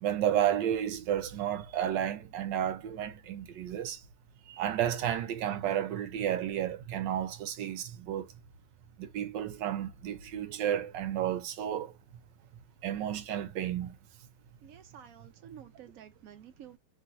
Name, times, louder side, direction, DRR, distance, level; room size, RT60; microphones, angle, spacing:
voice 1, 0.0-4.0 4.5-8.3 9.0-11.9 12.8-14.0, right 10 dB, 85° right, 1.3 m, -32 dB
voice 2, 14.6-16.8, right 9 dB, 65° right, 0.9 m, -51 dB
3.1 x 2.6 x 2.6 m
omnidirectional pair, 1.9 m